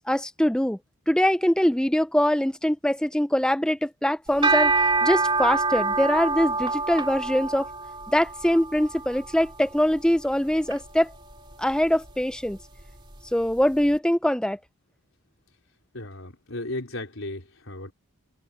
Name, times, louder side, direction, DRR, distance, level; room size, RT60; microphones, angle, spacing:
voice 1, 0.1-0.8 1.1-4.7 5.0-7.7 8.1-11.1 11.6-12.6 13.3-14.6, equal, 5° left, 0.6 m, -23 dB
sound 1, 4.3-13.6, right 3 dB, 20° right, 3.3 m, -28 dB
voice 2, 15.9-17.9, left 1 dB, 65° left, 4.2 m, -35 dB
head